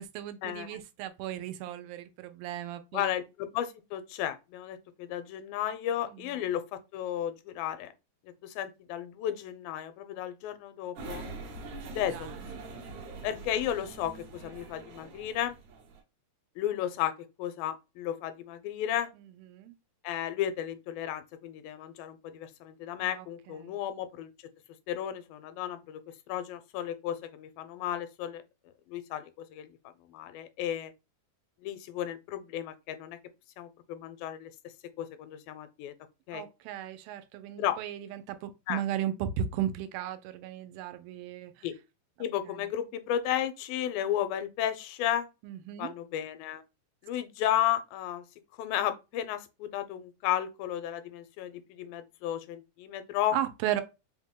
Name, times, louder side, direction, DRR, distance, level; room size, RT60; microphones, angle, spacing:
voice 1, 0.0-3.1 6.1-6.3 11.8-12.4 19.5-19.7 23.0-23.8 36.3-41.7 42.5-42.7 45.4-45.9 53.3-53.8, right 11 dB, 85° right, 2.4 m, -36 dB
voice 2, 2.9-6.6 6.9-7.9 8.4-11.2 11.9-12.3 13.2-15.6 16.6-17.1 17.4-19.1 20.0-24.3 24.9-26.0 26.3-28.4 28.9-29.7 30.1-30.9 31.6-33.2 33.6-34.5 35.0-35.9 36.3-36.4 37.6-37.8 38.7-38.8 41.6-41.7 42.2-45.3 45.8-46.6 47.0-48.2 48.6-53.3, left 11 dB, 85° left, 2.3 m, -33 dB
sound 1, 11.0-16.0, right 3 dB, 65° right, 2.0 m, -43 dB
5.5 x 2.1 x 3.5 m
omnidirectional pair, 4.1 m